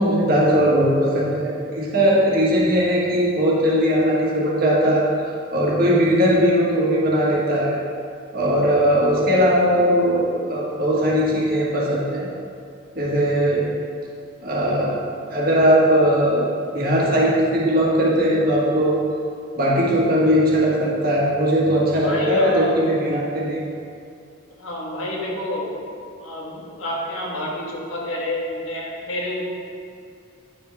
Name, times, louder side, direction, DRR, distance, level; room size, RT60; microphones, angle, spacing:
voice 1, 0.0-5.0 5.5-7.7 8.3-12.3 12.9-13.7 14.4-15.0 15.3-16.5 16.7-19.0 19.6-23.6, equal, 45° right, -4 dB, 1.4 m, -19 dB
voice 2, 22.0-22.7 24.6-25.8 26.2-29.5, left 1 dB, 80° left, -3 dB, 1.5 m, -28 dB
8.9 x 5.8 x 3.5 m, 2.4 s
head